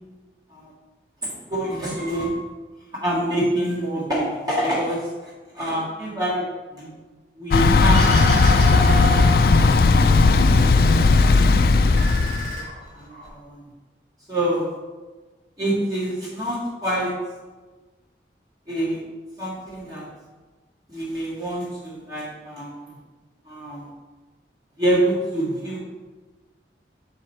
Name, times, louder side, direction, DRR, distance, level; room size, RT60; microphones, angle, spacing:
voice 1, 1.2-2.4 2.9-6.4 6.7-6.9 7.4-8.0 8.5-11.0 12.5-12.6 12.9-13.7 14.3-14.7 15.6-17.1 18.7-19.0 19.4-20.1 20.9-23.0 23.5-23.9 24.8-25.8, right 1 dB, 20° right, -7 dB, 1.8 m, -27 dB
Thunder / Bicycle, 7.5-12.6, left 3 dB, 55° left, 0.3 m, -16 dB
sound 1, 7.9-10.3 10.6-11.4 11.8-13.3, right 2 dB, 40° right, 2.3 m, -30 dB
6.4 x 4.8 x 4.3 m, 1.3 s
head